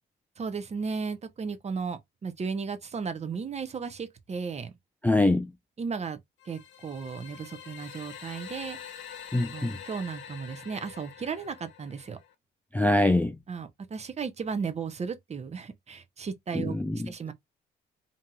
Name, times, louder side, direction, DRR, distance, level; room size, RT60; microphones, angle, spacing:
voice 1, 0.4-4.7 5.8-6.2 6.4-8.8 9.4-12.2 13.5-16.7 17.0-17.3, right 5 dB, 35° right, 0.6 m, -35 dB
voice 2, 5.0-5.5 9.3-9.8 12.7-13.4 16.5-17.1, left 1 dB, 10° left, 0.3 m, -24 dB
sound 1, 6.4-12.3, left 8 dB, 70° left, 0.7 m, -45 dB
2.8 x 2.7 x 2.3 m
cardioid pair, 90°, 20 cm